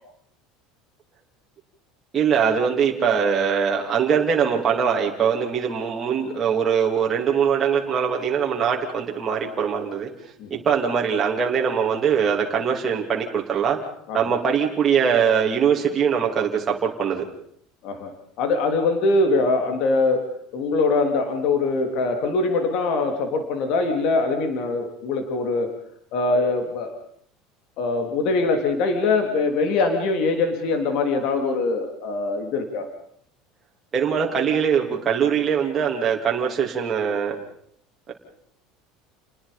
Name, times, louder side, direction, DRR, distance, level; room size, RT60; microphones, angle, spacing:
voice 1, 2.1-10.1 10.5-13.8 14.1-17.2 33.9-37.4 38.1-38.2, right 7 dB, 20° right, -1 dB, 3.1 m, -22 dB
voice 2, 18.4-20.2 20.5-25.7 26.1-26.9 27.8-32.9, left 3 dB, 45° left, 5 dB, 3.4 m, -22 dB
29.5 x 20.5 x 5.4 m, 0.65 s
cardioid pair, 175°, 0 cm